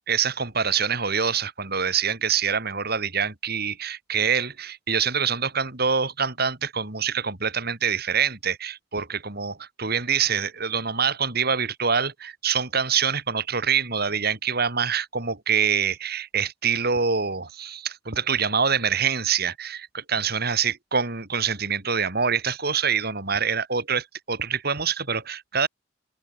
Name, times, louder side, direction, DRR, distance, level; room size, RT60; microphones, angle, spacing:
voice 1, 0.1-25.7, right 6 dB, 55° right, 3.8 m, -25 dB
head